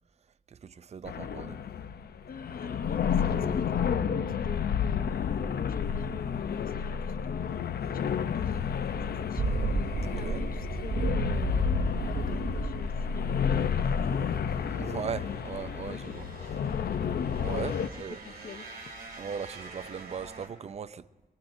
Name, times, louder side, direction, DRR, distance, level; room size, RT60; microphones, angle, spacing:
voice 1, 0.5-1.6 10.0-10.4 14.7-16.3 17.4-18.2 19.2-21.0, right 7 dB, 40° right, 0.5 m, -38 dB
sound 1, 1.1-17.9, left 7 dB, 80° left, 0.6 m, -31 dB
voice 2, 2.3-14.3 15.2-15.3 15.8-16.8 18.1-18.6, left 6 dB, 65° left, 0.9 m, -44 dB
sound 2, 9.4-20.5, right 3 dB, 65° right, 2.8 m, -36 dB
22.5 x 22.5 x 2.7 m
wide cardioid pair, 95°, 16 cm